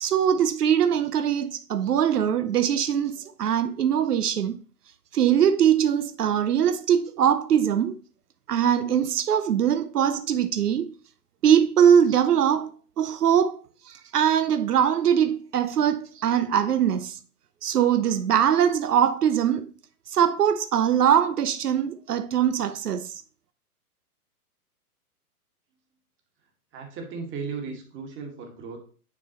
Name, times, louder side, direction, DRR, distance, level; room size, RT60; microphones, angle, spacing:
voice 1, 0.0-4.6 5.1-8.0 8.5-10.9 11.4-13.6 13.9-17.2 17.6-19.7 20.1-23.2, right 9 dB, 90° right, 0.6 m, -22 dB
voice 2, 26.7-28.8, right 5 dB, 25° right, 1.7 m, -36 dB
9.6 x 3.8 x 2.9 m
hypercardioid pair, 120°, 45 cm